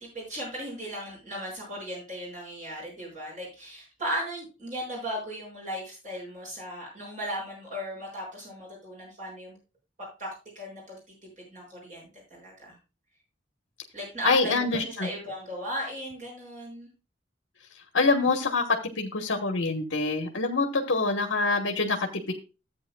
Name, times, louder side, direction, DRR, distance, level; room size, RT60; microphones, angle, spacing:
voice 1, 0.0-9.5 10.2-11.0 11.4-12.8 13.9-16.9, equal, 40° right, -3 dB, 6.1 m, -37 dB
voice 2, 14.2-15.1 17.9-18.6 19.0-22.3, left 3 dB, 90° left, 4 dB, 1.3 m, -25 dB
14.0 x 8.5 x 2.3 m, 0.30 s
head